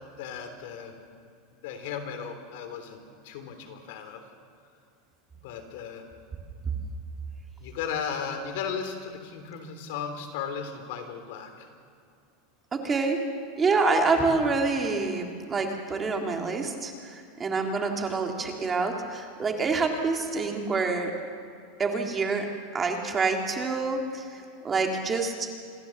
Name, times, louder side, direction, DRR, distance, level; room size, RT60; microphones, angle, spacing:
voice 1, 0.2-0.9 1.6-3.0 3.2-4.2 5.4-6.0 7.6-11.7, left 7 dB, 65° left, 7 dB, 3.2 m, -35 dB
voice 2, 12.7-13.2 13.6-21.1 21.8-22.5 22.7-25.3, right 4 dB, 20° right, 2 dB, 2.1 m, -27 dB
26.5 x 13.5 x 7.2 m, 2.5 s
supercardioid pair, 155°, 0 cm